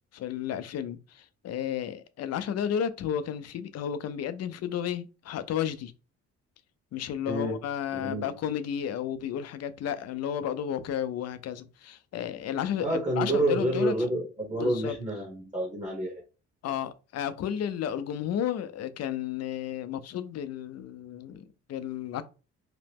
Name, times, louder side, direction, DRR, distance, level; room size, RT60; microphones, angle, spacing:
voice 1, 0.1-5.9 6.9-13.9 14.6-14.9 16.6-22.2, left 9 dB, 60° left, 0.5 m, -32 dB
voice 2, 7.3-7.6 7.9-8.3 12.8-16.2, right 1 dB, 25° right, 1.1 m, -28 dB
2.9 x 2.1 x 3.4 m
cardioid pair, 90°, 30 cm